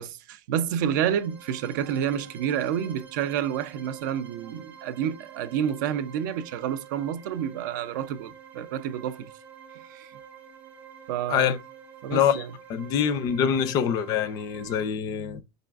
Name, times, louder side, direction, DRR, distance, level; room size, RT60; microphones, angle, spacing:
voice 1, 0.0-9.3 9.7-10.1 11.1-11.6 12.0-12.5, right 9 dB, 70° right, 0.4 m, -29 dB
sound 1, 0.8-14.8, right 7 dB, 15° right, 0.6 m, -48 dB
voice 2, 12.1-12.4 12.7-15.4, left 8 dB, 35° left, 0.4 m, -25 dB
4.8 x 2.5 x 2.3 m
supercardioid pair, 150°, 11 cm